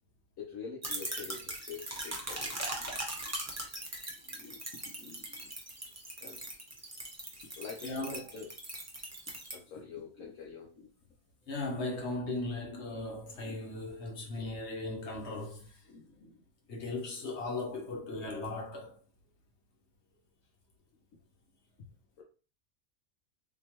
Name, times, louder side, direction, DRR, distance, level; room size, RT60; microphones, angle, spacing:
voice 1, 0.4-2.9 3.2-3.3 4.3-4.6 4.9-5.5 6.2-6.4 7.6-8.5 9.5-10.9 13.4-13.6 15.9-16.4 22.2-22.3, left 5 dB, 85° left, 1.1 m, -46 dB
sound 1, 0.8-9.5, right 1 dB, 15° right, 0.7 m, -40 dB
voice 2, 7.8-8.2 11.5-15.8 16.7-19.0, left 2 dB, 60° left, 1.1 m, -37 dB
3.7 x 2.9 x 2.9 m
omnidirectional pair, 1.4 m